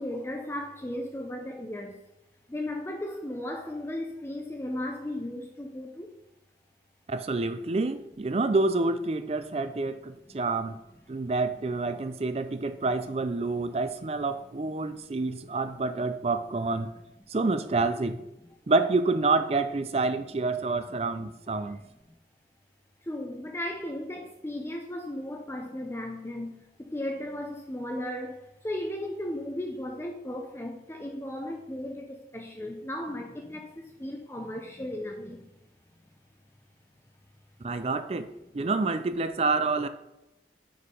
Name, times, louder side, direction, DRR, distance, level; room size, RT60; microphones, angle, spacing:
voice 1, 0.0-2.0 2.5-6.1 12.6-12.7 21.7-21.8 23.1-35.5, left 1 dB, 15° left, 0.6 m, -36 dB
voice 2, 7.1-10.8 11.1-16.9 17.3-18.2 18.7-21.8 37.6-38.3 38.5-39.9, right 3 dB, 35° right, 0.4 m, -28 dB
6.4 x 4.7 x 5.3 m
head